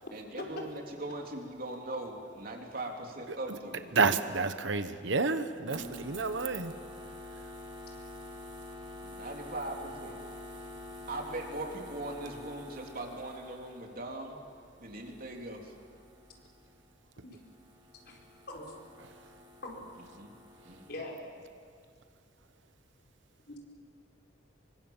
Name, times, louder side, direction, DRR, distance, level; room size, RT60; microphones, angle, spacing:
voice 1, 0.1-3.9 5.8-5.9 9.0-10.2 11.1-14.4 14.8-15.7 20.1-20.3 20.6-20.8, right 2 dB, 50° right, 1 dB, 3.5 m, -40 dB
voice 2, 4.0-6.7, right 4 dB, 80° right, 10 dB, 1.2 m, -29 dB
voice 3, 5.5-6.1 17.2-17.4 18.1-18.2 18.5-18.6 19.6-19.9 20.9-21.2 23.5-23.6, left 2 dB, 55° left, 0 dB, 4.9 m, -42 dB
sound 1, 5.7-17.0 17.3-20.9, left 1 dB, 25° right, 3.6 m, -48 dB
26.5 x 24.0 x 7.4 m, 2.3 s
head